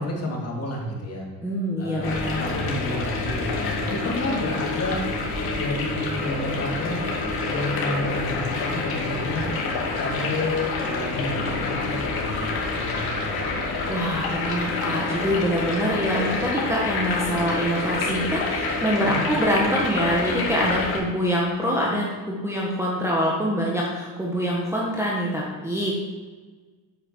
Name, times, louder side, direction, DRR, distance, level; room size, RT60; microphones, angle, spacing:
voice 1, 0.0-1.3 1.8-5.0 5.4-7.0 7.5-9.5 10.0-13.6 19.0-19.3, left 1 dB, 30° left, -1 dB, 2.5 m, -30 dB
voice 2, 1.4-2.4 13.9-25.9, equal, 5° right, -5 dB, 1.4 m, -25 dB
sound 1, 2.0-21.0, left 3 dB, 45° left, 2.3 m, -27 dB
8.7 x 7.9 x 4.6 m, 1.4 s
cardioid pair, 120°, 49 cm